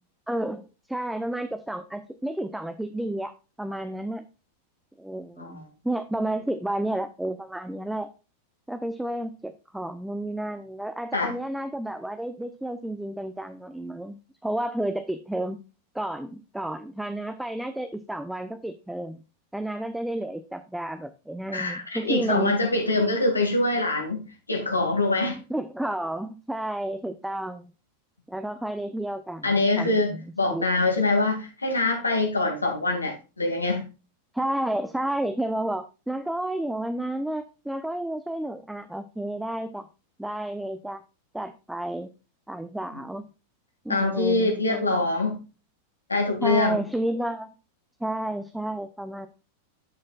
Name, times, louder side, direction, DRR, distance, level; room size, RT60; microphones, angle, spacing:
voice 1, 0.3-3.3 3.6-4.2 5.0-8.1 8.7-15.6 15.9-19.2 19.5-22.5 25.5-27.7 28.3-30.2 30.5-30.7 34.3-39.9 40.2-41.0 41.3-42.1 42.5-43.2 43.8-44.9 46.4-47.5 48.0-49.3, right 1 dB, 5° right, 0.6 m, -31 dB
voice 2, 21.5-25.4 29.4-33.9 43.9-45.4 46.1-46.8, left 2 dB, 80° left, 2.3 m, -24 dB
11.0 x 6.4 x 2.4 m
figure-of-eight pair, 90°, 0 cm